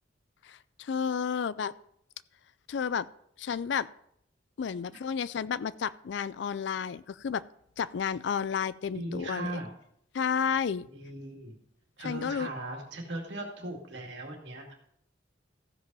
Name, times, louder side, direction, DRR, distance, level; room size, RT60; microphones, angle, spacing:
voice 1, 0.4-1.7 2.7-3.1 3.4-3.9 4.6-7.4 7.8-9.5 10.1-10.9 12.0-12.5, left 7 dB, 60° left, 18 dB, 0.4 m, -31 dB
voice 2, 8.9-9.7 10.9-11.5 12.0-14.7, right 1 dB, 65° right, 1 dB, 2.3 m, -38 dB
15.0 x 5.2 x 5.4 m, 0.71 s
head